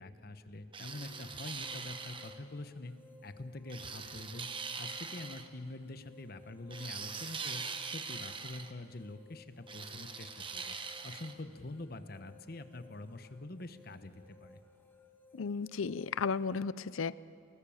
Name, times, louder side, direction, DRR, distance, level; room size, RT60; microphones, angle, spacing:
voice 1, 0.0-2.9 3.2-4.5 4.8-10.8 11.0-14.6, left 2 dB, 50° left, 10 dB, 1.1 m, -45 dB
sound 1, 0.7-2.4 3.7-5.5 6.7-8.7 9.7-11.3, right 5 dB, 25° right, 1.0 m, -42 dB
sound 2, 0.9-16.6, left 4 dB, 10° left, 1.3 m, -60 dB
voice 2, 15.3-17.1, left 5 dB, 90° left, 18 dB, 0.5 m, -34 dB
28.5 x 18.5 x 7.2 m, 2.6 s
head